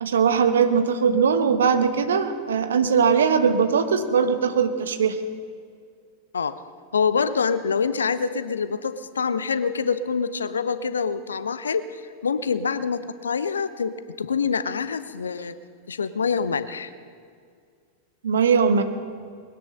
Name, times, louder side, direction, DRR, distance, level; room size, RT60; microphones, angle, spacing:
voice 1, 0.0-5.2 18.2-18.8, right 6 dB, 65° right, 9 dB, 1.2 m, -20 dB
voice 2, 6.9-12.0 12.2-15.6 15.9-16.9, left 5 dB, 70° left, 14 dB, 0.7 m, -25 dB
20.5 x 10.5 x 6.5 m, 2.1 s
figure-of-eight pair, 90°, 0 cm